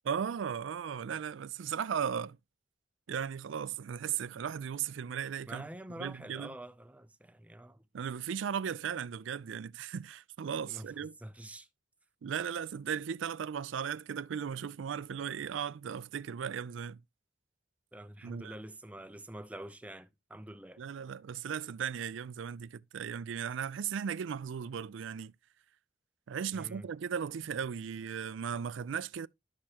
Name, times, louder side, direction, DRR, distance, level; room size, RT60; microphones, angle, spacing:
voice 1, 0.1-2.4 3.1-5.7 6.0-6.5 7.9-11.2 12.2-17.0 18.2-18.6 20.8-25.3 26.3-29.3, right 7 dB, 85° right, 0.4 m, -36 dB
voice 2, 5.5-7.8 10.7-10.9 11.2-11.7 17.9-20.8 26.5-26.9, right 1 dB, 5° right, 0.4 m, -46 dB
11.5 x 6.4 x 2.9 m
head